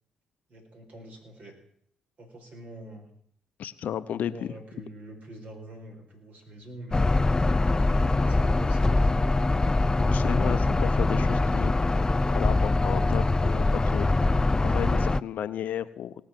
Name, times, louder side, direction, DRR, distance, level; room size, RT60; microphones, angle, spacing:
voice 1, 0.5-1.5 2.2-3.1 4.1-7.2 7.7-9.4, right 1 dB, 55° right, 2 dB, 4.5 m, -45 dB
voice 2, 3.6-4.6 10.0-12.0 12.3-14.1 14.6-16.1, left 10 dB, 65° left, 14 dB, 0.7 m, -33 dB
sound 1, 6.9-15.2, left 2 dB, 25° left, 0.4 m, -23 dB
18.5 x 6.4 x 7.6 m, 0.67 s
hypercardioid pair, 50°, 3 cm